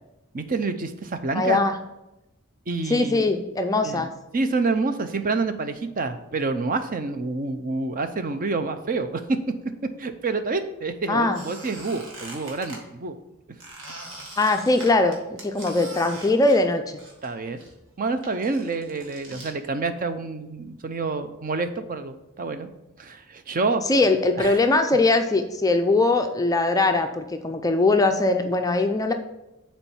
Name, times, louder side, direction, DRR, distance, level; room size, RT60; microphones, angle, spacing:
voice 1, 0.3-1.6 2.7-3.2 3.8-9.2 10.0-13.2 17.2-17.6 18.0-22.7 23.0-23.8 24.4-24.6, right 3 dB, 40° right, 9 dB, 0.6 m, -28 dB
voice 2, 1.3-1.7 2.9-4.1 11.1-11.4 14.4-17.0 23.9-29.1, left 2 dB, 15° left, 6 dB, 0.4 m, -21 dB
Squeak, 11.3-12.8 13.6-17.3 17.6-19.5, right 2 dB, 60° right, 1.8 m, -42 dB
7.1 x 4.4 x 5.6 m, 0.93 s
head